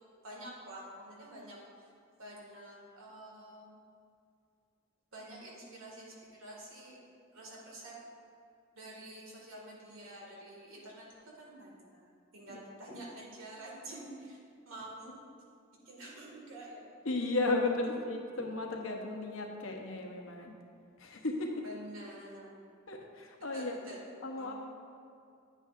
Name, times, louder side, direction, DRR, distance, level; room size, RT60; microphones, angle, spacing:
voice 1, 0.2-1.9 2.2-3.7 5.1-7.0 7.3-8.1 8.7-14.4 14.7-15.2 15.9-16.9 17.9-18.0 21.6-22.6 23.5-24.1 24.4-24.5, right 1 dB, 80° right, -3 dB, 2.1 m, -48 dB
voice 2, 17.0-20.5 21.0-21.5 22.9-23.8 24.2-24.5, left 2 dB, 75° left, 2 dB, 1.0 m, -34 dB
9.6 x 9.2 x 2.6 m, 2.4 s
head